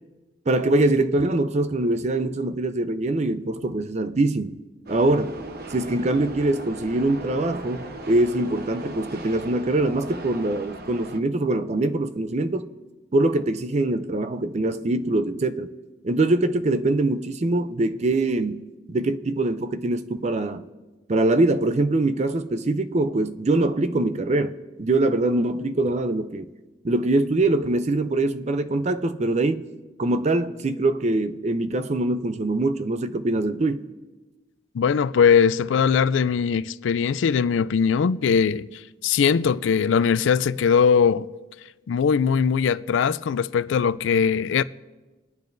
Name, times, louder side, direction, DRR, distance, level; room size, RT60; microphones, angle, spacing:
voice 1, 0.5-4.6 4.9-5.4 5.7-12.7 13.1-15.7 16.0-18.6 18.9-20.6 21.1-26.5 26.8-29.7 30.0-33.9, right 2 dB, 35° right, 0.5 m, -23 dB
sound 1, 4.9-11.2, right 2 dB, 55° right, 0.9 m, -38 dB
voice 2, 34.7-41.3 41.9-44.6, left 6 dB, 85° left, 0.4 m, -20 dB
24.0 x 9.5 x 2.6 m
head